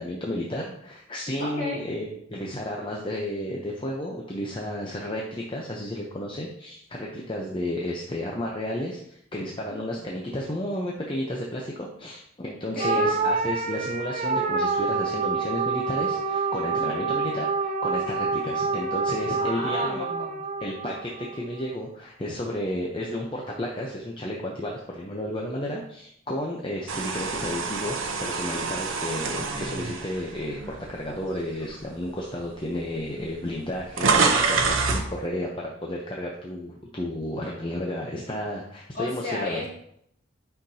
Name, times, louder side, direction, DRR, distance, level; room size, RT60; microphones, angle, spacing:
voice 1, 0.0-20.0 20.6-39.6, left 1 dB, 25° left, -1 dB, 0.7 m, -32 dB
voice 2, 1.4-1.8 9.7-10.2 12.7-13.0 16.7-16.9 19.2-20.4 38.9-39.7, left 2 dB, 45° left, -7 dB, 2.9 m, -34 dB
sound 1, 12.8-21.4, right 4 dB, 35° right, 0.5 m, -27 dB
sound 2, 26.9-31.1 31.6-31.8 32.7-32.8 33.0-35.1, right 4 dB, 70° right, 0.9 m, -26 dB
9.0 x 5.9 x 2.8 m, 0.72 s
head